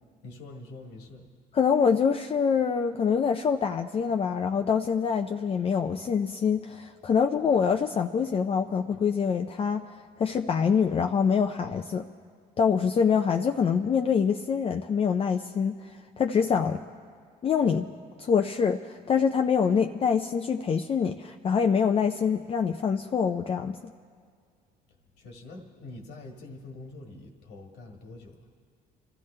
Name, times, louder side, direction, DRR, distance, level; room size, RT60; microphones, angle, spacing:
voice 1, 0.2-1.3 25.2-28.5, left 2 dB, 90° left, 1 dB, 1.7 m, -45 dB
voice 2, 1.5-12.0 12.6-15.8 16.2-16.8 17.4-17.9 18.2-23.8, left 6 dB, 35° left, 5 dB, 0.5 m, -25 dB
27.0 x 14.0 x 3.3 m, 2.1 s
cardioid pair, 110°, 17 cm